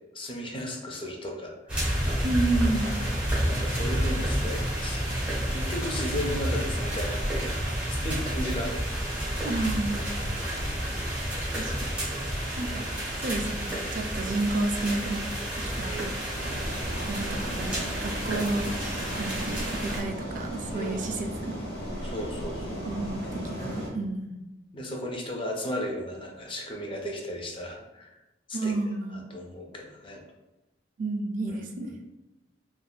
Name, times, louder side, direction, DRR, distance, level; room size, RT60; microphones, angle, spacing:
voice 1, 0.1-2.0 3.5-5.2 5.5-8.7 10.5-11.0 15.8-16.2 20.7-21.1 22.0-22.8 24.7-28.2 28.5-30.2 31.5-31.9, left 1 dB, 30° left, 1 dB, 0.5 m, -36 dB
sound 1, 1.7-20.0, equal, 10° right, 0.9 m, -30 dB
voice 2, 2.2-3.0 9.4-10.1 11.6-11.7 12.6-12.9 13.2-15.3 15.6-16.1 17.1-18.7 19.2-21.6 22.9-24.4 28.5-29.3 31.0-32.0, right 2 dB, 45° right, 4 dB, 0.3 m, -31 dB
sound 2, 16.4-23.9, equal, 60° left, 0.8 m, -36 dB
3.4 x 2.4 x 2.2 m, 0.99 s
head